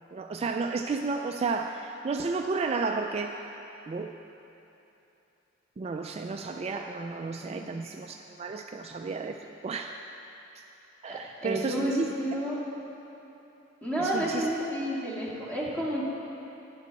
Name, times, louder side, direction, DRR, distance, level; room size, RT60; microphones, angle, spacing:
voice 1, 0.1-3.4 3.9-4.1 5.8-9.4 9.6-10.0 11.0-12.1 14.0-14.5, right 4 dB, 30° right, 4 dB, 0.3 m, -32 dB
voice 2, 11.1-12.6 13.8-16.0, equal, 5° left, -6 dB, 2.1 m, -30 dB
15.0 x 10.5 x 4.1 m, 3.0 s
head